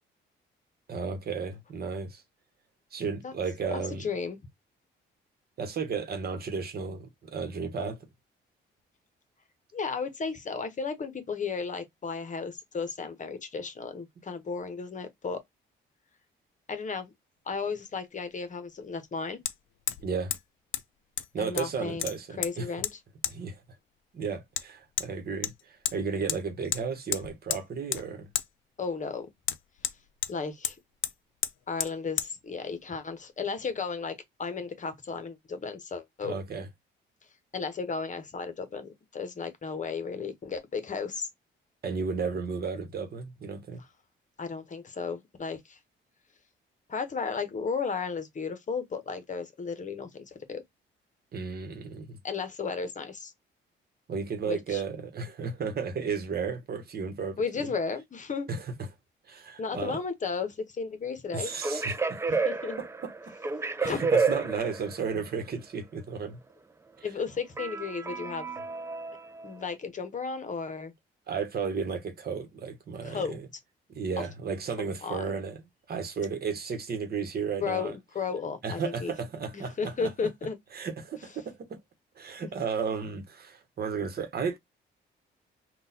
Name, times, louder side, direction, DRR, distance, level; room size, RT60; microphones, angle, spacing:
voice 1, 0.9-2.2 2.9-4.1 5.6-8.1 20.0-20.3 21.3-22.7 23.3-23.6 24.1-28.3 36.2-36.7 41.8-43.8 51.3-52.2 54.1-57.7 58.5-58.9 59.3-60.0 61.3-62.4 62.8-63.3 63.8-66.4 67.0-67.1 71.3-73.5 73.9-75.6 75.9-77.9 78.6-80.1 80.7-81.8 82.2-84.6, right 5 dB, 50° right, 1.0 m, -34 dB
voice 2, 3.7-4.4 9.7-15.4 16.7-17.1 17.5-19.4 21.4-22.1 22.4-23.0 28.8-29.3 30.3-30.8 31.7-36.4 37.5-41.3 44.4-45.8 46.9-50.6 52.2-53.3 54.5-54.8 57.4-58.5 59.6-61.5 62.2-62.8 63.8-64.0 67.0-68.5 69.4-70.9 73.0-73.3 74.2-74.3 74.8-75.3 77.6-79.1 79.5-80.6, left 5 dB, 40° left, 0.9 m, -34 dB
Hammer, 17.5-17.6 19.5-19.6 19.9-20.1 20.3-20.4 20.7-20.8 21.2-21.7 22.0-22.5 22.8-22.9 23.2-23.4 24.6-24.7 25.0-25.1 25.4-26.0 26.3-26.4 26.7-26.8 27.1-27.6 27.9-28.0 28.3-28.5 29.4-30.3 30.6-30.8 31.0-31.1 31.4-31.5 31.8-31.9 32.2-32.3, left 12 dB, 75° left, 0.5 m, -31 dB
sound 1, 61.5-65.2 67.6-69.7, right 4 dB, 15° right, 0.4 m, -30 dB
3.7 x 2.3 x 2.7 m
cardioid pair, 90°, 20 cm